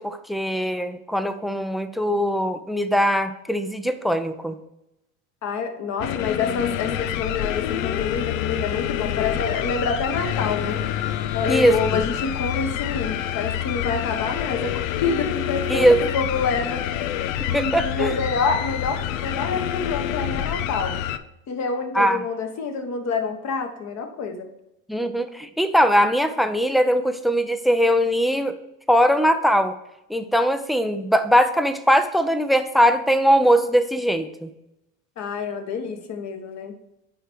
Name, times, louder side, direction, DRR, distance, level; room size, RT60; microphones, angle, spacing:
voice 1, 0.0-4.6 11.5-11.7 15.7-16.0 17.4-18.1 21.9-22.2 24.9-28.5 28.9-29.8 30.1-34.5, equal, ahead, 10 dB, 0.4 m, -20 dB
voice 2, 5.4-10.8 11.3-15.9 16.1-16.8 17.4-21.0 21.5-24.5 35.2-36.8, left 5 dB, 45° left, 5 dB, 1.4 m, -27 dB
sound 1, 6.0-21.2, left 11 dB, 80° left, 0.6 m, -27 dB
9.9 x 3.4 x 4.5 m, 0.88 s
supercardioid pair, 100°, 39 cm